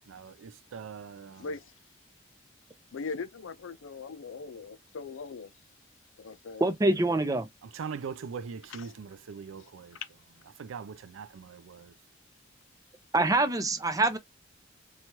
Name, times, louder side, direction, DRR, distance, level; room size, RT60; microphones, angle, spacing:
voice 1, 0.1-1.5 7.6-10.0 10.6-11.9, right 6 dB, 90° right, 0.4 m, -41 dB
voice 2, 2.9-5.5 6.2-6.7 8.7-8.9 9.6-9.7, left 4 dB, 75° left, 0.4 m, -40 dB
voice 3, 6.6-7.5 13.1-14.2, right 2 dB, 20° right, 0.5 m, -25 dB
2.9 x 2.3 x 2.9 m
head